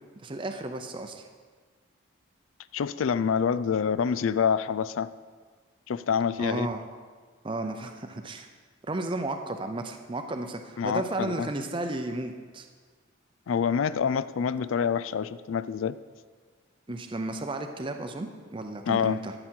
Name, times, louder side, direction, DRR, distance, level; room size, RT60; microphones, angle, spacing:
voice 1, 0.2-1.3 6.4-6.8 7.4-8.5 8.9-12.7 16.9-19.3, right 2 dB, 25° right, 5 dB, 0.6 m, -33 dB
voice 2, 2.7-5.1 5.9-6.7 10.8-11.5 13.5-16.0 18.9-19.2, left 7 dB, 80° left, 15 dB, 0.4 m, -26 dB
13.0 x 7.6 x 4.4 m, 1.5 s
head